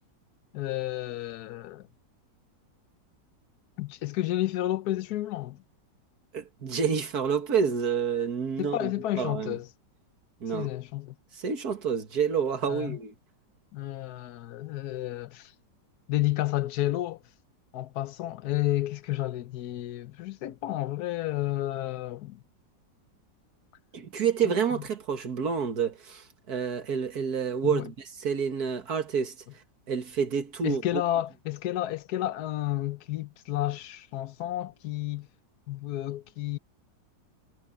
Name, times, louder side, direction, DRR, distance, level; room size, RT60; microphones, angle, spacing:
voice 1, 0.5-1.9 3.8-5.6 8.6-9.7 10.5-11.1 12.7-13.0 13.7-15.5 16.1-17.2 17.7-22.4 24.4-24.8 27.6-27.9 30.6-35.3 35.7-36.6, left 14 dB, 65° left, 1.1 m, -31 dB
voice 2, 6.3-9.6 10.4-10.7 11.3-13.1 23.9-29.3 29.9-30.8, right 6 dB, 55° right, 2.2 m, -28 dB
omnidirectional pair, 2.0 m